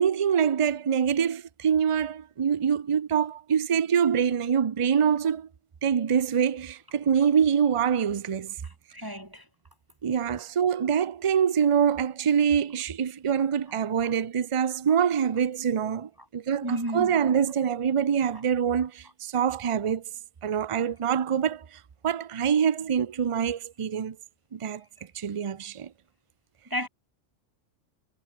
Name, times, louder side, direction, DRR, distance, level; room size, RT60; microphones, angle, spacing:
voice 1, 0.0-5.5 5.8-8.5 10.0-20.0 20.4-21.6 22.0-24.2 24.5-24.8 25.1-25.9, right 7 dB, 35° right, 0.5 m, -25 dB
voice 2, 8.6-9.4 16.6-17.3 26.7-26.9, equal, 15° right, 2.5 m, -33 dB
omnidirectional pair, 1.3 m